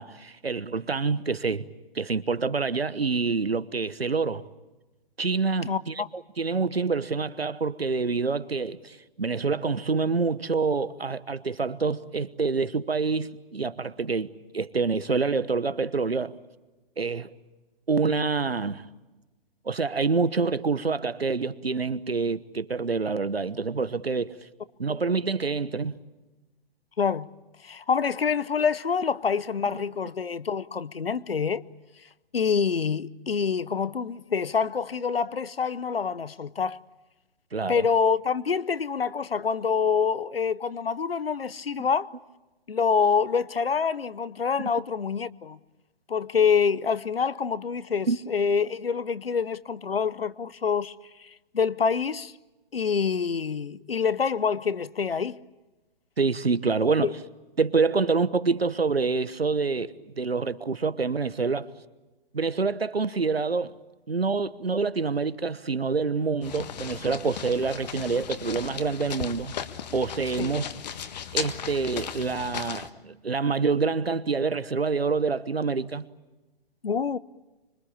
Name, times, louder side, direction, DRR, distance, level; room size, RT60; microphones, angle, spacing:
voice 1, 0.0-1.7 1.9-4.4 5.2-16.4 17.0-17.3 17.9-18.9 19.6-24.4 24.8-25.9 29.6-29.8 37.5-37.8 48.1-48.2 56.2-57.1 57.6-61.7 62.3-63.7 64.1-69.5 69.9-70.7 71.3-76.0, right 4 dB, 80° right, 1.2 m, -27 dB
voice 2, 5.6-6.1 27.0-27.3 27.6-31.6 32.3-36.8 37.7-42.1 42.7-45.6 46.1-52.3 52.7-55.4 57.0-57.1 70.4-70.5 76.8-77.2, left 6 dB, 75° left, 0.9 m, -26 dB
sound 1, 66.4-72.9, left 8 dB, 45° left, 1.6 m, -36 dB
25.5 x 23.0 x 8.7 m
figure-of-eight pair, 130°, 30 cm